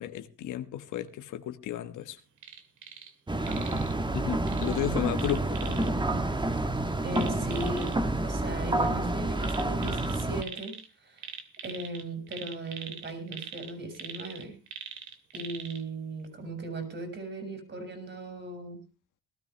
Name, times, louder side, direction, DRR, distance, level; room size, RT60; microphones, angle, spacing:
voice 1, 0.0-2.2 4.1-5.9, left 12 dB, 80° left, 1.4 m, -33 dB
sound 1, 2.4-3.1 3.4-3.9 4.5-5.9 7.1-8.0 9.4-10.9 11.2-15.8 16.2-16.3, right 7 dB, 75° right, 2.4 m, -43 dB
sound 2, 3.3-10.4, right 2 dB, 15° right, 1.4 m, -29 dB
voice 2, 3.5-3.9 4.6-5.0 7.0-10.7 11.0-14.6 15.3-18.8, right 2 dB, 40° right, 5.9 m, -38 dB
18.5 x 13.0 x 3.4 m
cardioid pair, 90°, 30 cm